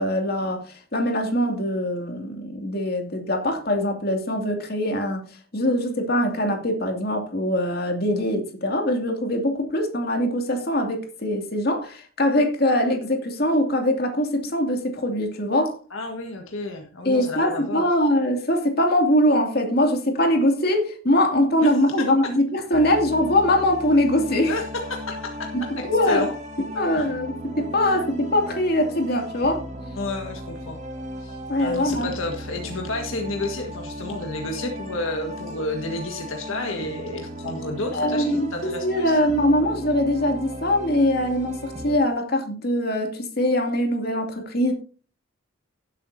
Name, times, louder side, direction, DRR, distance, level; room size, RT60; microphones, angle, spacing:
voice 1, 0.0-5.2 5.5-15.8 17.0-24.5 25.5-26.3 26.7-29.6 31.5-32.1 37.9-44.7, left 1 dB, 45° left, 2.5 m, -22 dB
voice 2, 15.9-17.9 21.6-22.3 24.5-26.3 26.7-27.1 27.8-28.0 29.9-30.8 31.2-39.2, left 2 dB, 70° left, 1.7 m, -31 dB
sound 1, 22.7-42.0, equal, 35° right, 1.7 m, -36 dB
17.0 x 8.3 x 2.7 m
head